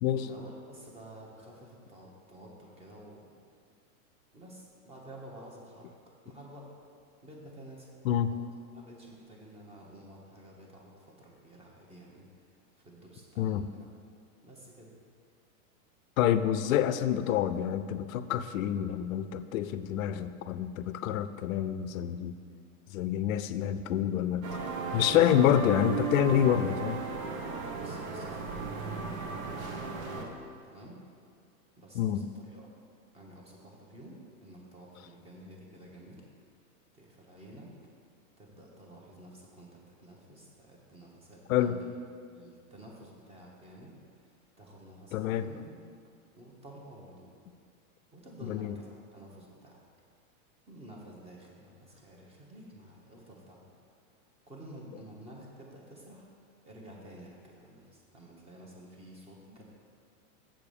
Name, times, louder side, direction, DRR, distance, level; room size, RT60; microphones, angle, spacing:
voice 1, 0.1-3.3 4.3-6.0 6.2-6.7 7.2-7.9 8.3-13.9 14.4-14.9 27.7-29.4 29.8-31.0 31.8-32.7 33.1-36.2 36.9-37.7 38.4-42.0 42.3-43.9 44.2-45.8 46.3-47.3 48.1-49.8 50.7-53.7 54.5-56.3 56.6-59.6, right 1 dB, 15° right, -1 dB, 1.0 m, -51 dB
voice 2, 16.2-22.4 22.9-24.4 24.9-27.0 31.9-32.2 41.5-41.8 45.1-45.5 48.4-48.7, left 10 dB, 70° left, 13 dB, 0.5 m, -27 dB
sound 1, 24.4-30.2, right 5 dB, 65° right, 1.2 m, -35 dB
7.6 x 4.8 x 7.0 m, 2.3 s
supercardioid pair, 155°, 43 cm